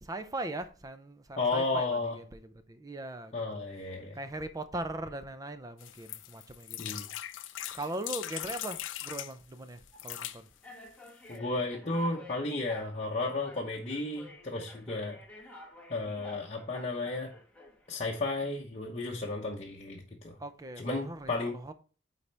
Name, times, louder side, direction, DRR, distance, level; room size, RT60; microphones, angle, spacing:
voice 1, 0.0-3.6 4.1-7.0 7.7-10.5 20.4-21.7, right 2 dB, 20° right, 0.6 m, -40 dB
voice 2, 1.4-2.2 3.3-4.2 6.8-7.1 11.3-15.2 15.9-17.3 17.9-20.4 20.8-21.5, left 2 dB, 35° left, 1.0 m, -33 dB
sound 1, 5.8-9.3 9.9-10.4 11.1-11.2 11.3-11.4, left 13 dB, 90° left, 0.5 m, -40 dB
sound 2, 7.6-8.1 8.9-9.1 9.9-10.1 10.6-17.9, left 1 dB, 10° left, 1.3 m, -51 dB
9.5 x 4.2 x 3.4 m
head